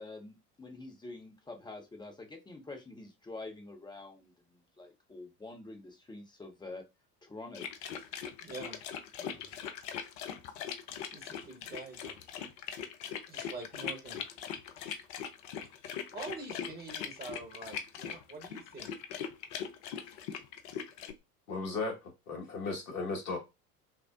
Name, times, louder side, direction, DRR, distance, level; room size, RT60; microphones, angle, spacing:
voice 1, 0.0-4.3 4.8-6.8 7.2-7.7, left 2 dB, 10° left, 3 dB, 0.7 m, -46 dB
sound 1, 7.5-21.1, left 8 dB, 45° left, 0.6 m, -41 dB
voice 2, 8.4-8.8 9.2-9.4 10.4-10.5 11.1-12.2 13.0-14.2 16.1-19.0, right 3 dB, 20° right, 2 dB, 1.0 m, -46 dB
voice 3, 21.5-22.0 22.3-23.4, left 3 dB, 65° left, 0 dB, 1.5 m, -35 dB
5.5 x 2.0 x 2.5 m, 0.24 s
figure-of-eight pair, 70°, 47 cm